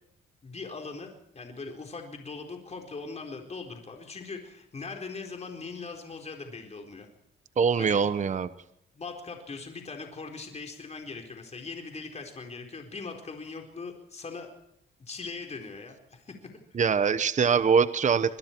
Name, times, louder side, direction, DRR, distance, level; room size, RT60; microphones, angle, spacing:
voice 1, 0.4-7.1 7.8-8.0 8.9-14.5 15.0-16.3 16.7-16.8, left 4 dB, 35° left, 3 dB, 4.3 m, -40 dB
voice 2, 7.6-8.5 16.7-18.4, right 6 dB, 40° right, 13 dB, 1.0 m, -23 dB
26.0 x 22.0 x 4.6 m, 0.76 s
cardioid pair, 90°, 20 cm